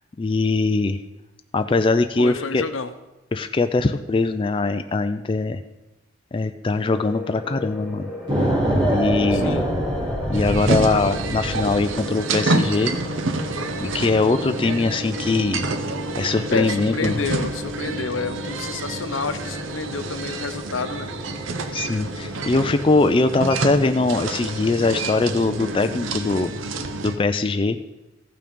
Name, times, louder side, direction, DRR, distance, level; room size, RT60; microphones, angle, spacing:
voice 1, 0.2-1.0 1.5-2.6 3.3-5.6 6.3-8.1 8.9-9.5 10.3-12.9 13.8-15.7 16.2-17.2 21.7-26.5 27.0-27.8, left 3 dB, 25° left, 8 dB, 0.4 m, -21 dB
voice 2, 2.2-2.9 9.3-9.7 16.5-21.1, left 4 dB, 80° left, 10 dB, 0.8 m, -29 dB
sound 1, 6.9-26.0, left 2 dB, 5° right, 1.6 m, -38 dB
sound 2, 8.3-12.0, equal, 25° right, 3.1 m, -24 dB
sound 3, 10.3-27.2, right 2 dB, 80° right, 0.8 m, -28 dB
14.5 x 6.0 x 5.2 m, 0.99 s
head